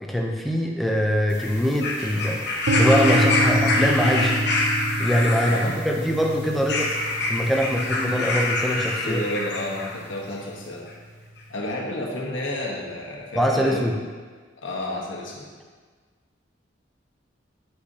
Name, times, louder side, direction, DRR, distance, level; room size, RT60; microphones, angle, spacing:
voice 1, 0.0-2.4 2.8-4.4 5.0-6.9 7.3-9.2 13.3-13.9, equal, ahead, 0 dB, 0.5 m, -23 dB
Bird sounds from Holland, 1.3-10.0 10.9-11.0, left 2 dB, 60° left, 1.0 m, -26 dB
sound 1, 2.7-10.6, right 1 dB, 75° right, 0.6 m, -28 dB
voice 2, 5.5-6.1 9.0-10.9 11.5-13.9 14.6-15.5, left 1 dB, 90° left, -2 dB, 1.2 m, -31 dB
7.9 x 5.6 x 2.8 m, 1.5 s
head